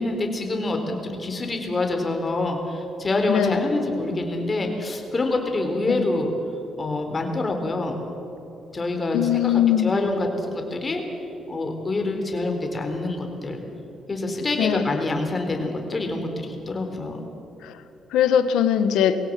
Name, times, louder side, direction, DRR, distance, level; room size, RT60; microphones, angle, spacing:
voice 1, 0.0-6.3 6.8-8.0 8.7-11.0 11.5-13.6 14.1-17.2, left 2 dB, 30° left, 4 dB, 4.1 m, -26 dB
voice 2, 3.3-3.6 5.9-6.1 9.1-9.9 14.6-14.9 18.1-19.2, left 9 dB, 85° left, 11 dB, 1.3 m, -20 dB
22.5 x 17.0 x 7.6 m, 3.0 s
cardioid pair, 90°, 0 cm